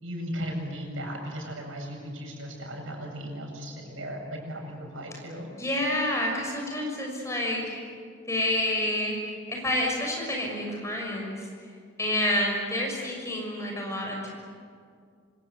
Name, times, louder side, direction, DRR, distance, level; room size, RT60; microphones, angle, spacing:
voice 1, 0.0-5.5, equal, 90° right, 1 dB, 7.8 m, -36 dB
voice 2, 5.6-7.8 8.3-11.5 12.0-14.3, left 1 dB, 15° left, 0 dB, 6.4 m, -28 dB
27.0 x 25.5 x 8.4 m, 2.1 s
head